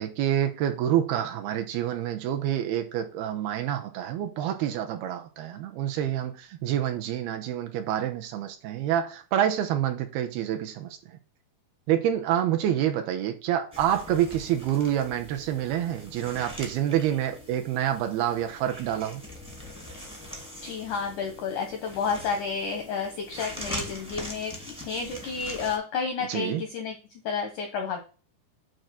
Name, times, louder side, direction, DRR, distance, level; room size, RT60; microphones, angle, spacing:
voice 1, 0.0-11.0 11.9-19.2 26.3-26.6, right 11 dB, 80° right, 2.6 m, -27 dB
sound 1, 13.7-25.8, left 1 dB, 5° right, 0.6 m, -42 dB
voice 2, 20.6-24.5 24.8-28.0, left 5 dB, 80° left, 1.8 m, -31 dB
9.1 x 3.1 x 5.8 m
omnidirectional pair, 4.8 m